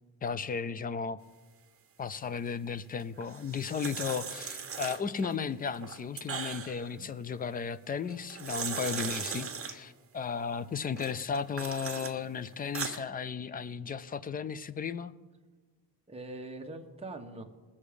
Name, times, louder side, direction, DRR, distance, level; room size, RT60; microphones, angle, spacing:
voice 1, 0.2-1.2 2.0-15.1, left 6 dB, 25° left, 16 dB, 0.3 m, -35 dB
sound 1, 3.2-5.3 5.7-6.9 8.1-9.8 11.0-12.1 12.5-13.0, right 6 dB, 35° right, 1.3 m, -38 dB
voice 2, 8.9-9.4 16.1-17.4, right 2 dB, 15° right, 2 dB, 1.1 m, -44 dB
21.0 x 7.1 x 5.0 m, 1.3 s
wide cardioid pair, 170°, 40 cm